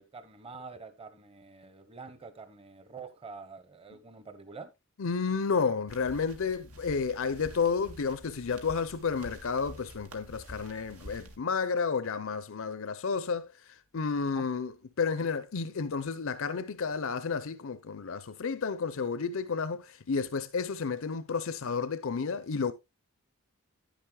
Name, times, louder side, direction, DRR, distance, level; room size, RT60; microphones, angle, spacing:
voice 1, 0.0-4.7 14.3-14.5, right 4 dB, 25° right, 0.9 m, -46 dB
voice 2, 5.0-22.7, left 5 dB, 60° left, 0.6 m, -31 dB
sound 1, 5.9-11.4, equal, 85° right, 2.1 m, -49 dB
10.5 x 10.5 x 2.3 m
head